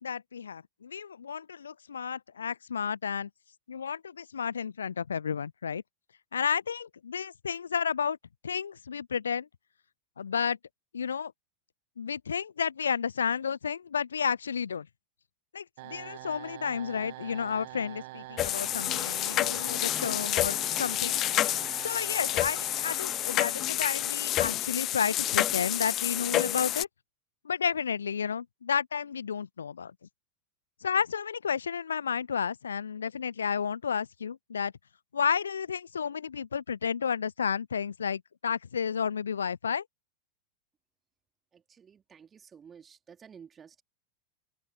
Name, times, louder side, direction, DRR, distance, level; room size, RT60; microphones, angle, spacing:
voice 1, 0.0-3.3 3.7-5.8 6.3-8.2 8.4-9.5 10.2-10.6 10.9-11.3 12.0-14.9 15.5-21.1 21.8-26.9 27.4-29.9 30.8-34.7 35.1-39.8, left 7 dB, 70° left, 0.6 m, -32 dB
sound 1, 15.8-24.7, right 20 dB, 50° right, 0.6 m, -45 dB
sound 2, 18.4-26.8, left 13 dB, 35° left, 0.3 m, -29 dB
voice 2, 41.5-43.8, right 7 dB, 20° right, 3.1 m, -52 dB
open air
figure-of-eight pair, 90°, 0 cm